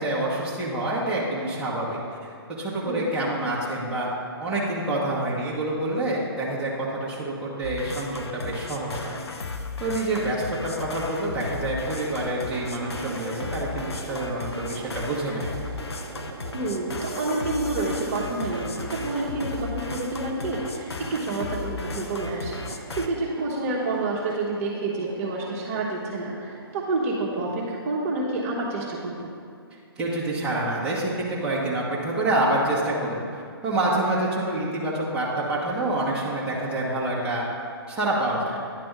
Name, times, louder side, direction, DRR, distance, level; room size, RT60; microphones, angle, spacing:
voice 1, 0.0-2.0 2.5-4.1 4.4-9.2 9.8-15.5 30.0-33.2 33.6-37.4 37.9-38.6, right 1 dB, 5° right, -7 dB, 1.2 m, -27 dB
sound 1, 7.6-23.1, left 3 dB, 85° left, 0.7 m, -35 dB
sound 2, 11.9-28.3, right 5 dB, 55° right, 0.5 m, -42 dB
voice 2, 16.5-29.3, right 2 dB, 35° right, -4 dB, 1.2 m, -29 dB
10.0 x 3.4 x 6.6 m, 2.2 s
hypercardioid pair, 140°, 13 cm